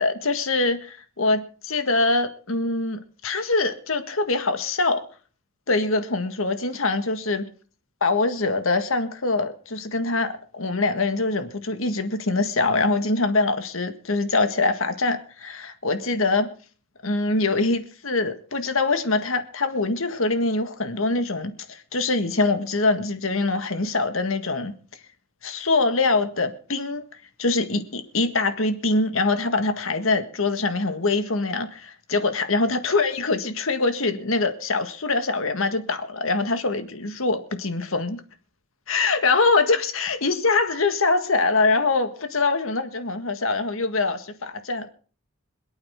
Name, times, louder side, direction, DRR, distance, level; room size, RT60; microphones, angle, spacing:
voice 1, 0.0-5.0 5.7-7.5 8.0-16.5 17.0-24.8 25.4-27.0 27.4-38.2 38.9-44.9, left 3 dB, 80° left, 9 dB, 1.7 m, -24 dB
26.5 x 8.9 x 3.7 m, 0.39 s
head